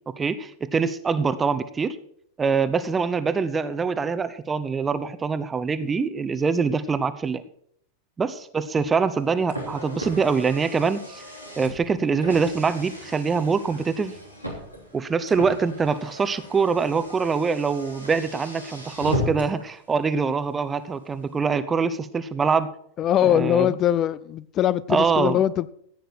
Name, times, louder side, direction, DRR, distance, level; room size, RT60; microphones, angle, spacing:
voice 1, 0.2-2.0 2.4-7.4 8.2-11.2 11.6-14.1 14.9-22.7 23.2-23.7 24.9-25.4, right 5 dB, 15° right, 0.8 m, -24 dB
Car, 9.0-19.7, left 1 dB, 90° left, 3.0 m, -36 dB
voice 2, 23.0-25.7, left 11 dB, 30° left, 0.5 m, -22 dB
15.0 x 9.2 x 4.4 m
figure-of-eight pair, 90°, 0 cm